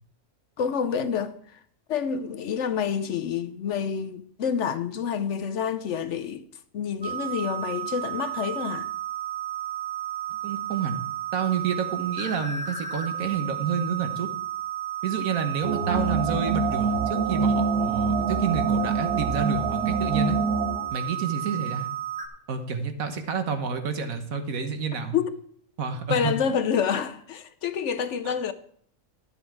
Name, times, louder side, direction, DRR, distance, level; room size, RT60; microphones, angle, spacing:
voice 1, 0.6-1.3 1.9-6.4 6.7-8.9 25.1-25.3 26.1-28.5, left 7 dB, 60° left, 0.9 m, -28 dB
sound 1, 7.0-22.3, right 11 dB, 5° right, 0.8 m, -33 dB
voice 2, 10.4-11.0 11.3-14.3 15.0-20.4 20.9-21.9 22.5-25.2 25.8-26.6 28.2-28.3, right 6 dB, 70° right, 1.6 m, -29 dB
sound 2, 15.6-20.9, right 4 dB, 90° right, 1.6 m, -25 dB
12.0 x 7.8 x 4.6 m
omnidirectional pair, 1.5 m